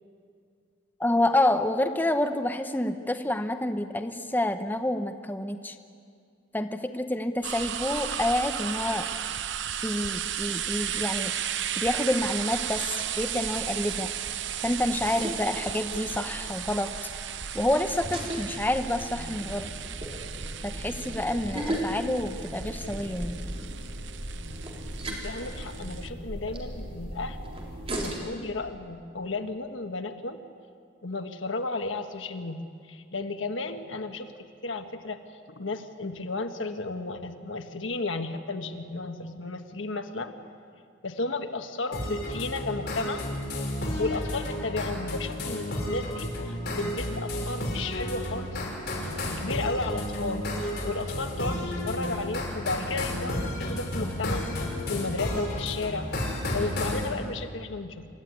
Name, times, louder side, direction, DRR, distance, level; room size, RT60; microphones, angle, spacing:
voice 1, 1.0-5.7 6.5-9.1 9.8-11.3 11.8-14.1 14.6-16.9 17.5-19.7 20.6-23.4, left 1 dB, 10° left, 7 dB, 0.8 m, -28 dB
sound 1, 7.4-26.1, right 9 dB, 65° right, 0.8 m, -35 dB
sound 2, 12.9-28.2, equal, 30° right, 4.0 m, -38 dB
voice 2, 25.1-27.4 28.0-30.4 31.0-32.6 32.9-34.3 34.6-35.2 35.5-40.3 41.0-43.3 44.0-48.6 49.2-54.5 54.8-56.1 56.5-58.1, left 3 dB, 80° left, 7 dB, 1.4 m, -33 dB
sound 3, 41.9-57.1, left 1 dB, 60° left, 5.4 m, -32 dB
26.0 x 14.0 x 9.7 m, 2.3 s
head